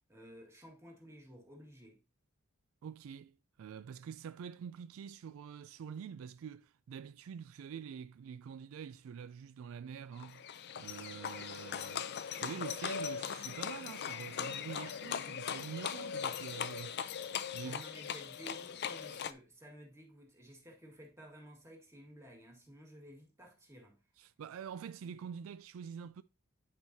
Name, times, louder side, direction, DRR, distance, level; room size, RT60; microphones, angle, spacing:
voice 1, 0.0-2.0 17.6-24.0, right 1 dB, 15° right, 1.7 m, -54 dB
voice 2, 2.8-3.3 3.6-10.5 10.8-17.1 17.5-17.8 24.2-26.2, right 7 dB, 75° right, 0.3 m, -46 dB
Livestock farm animals working animals, 10.2-19.3, left 8 dB, 55° left, 0.5 m, -40 dB
10.5 x 4.7 x 2.7 m
head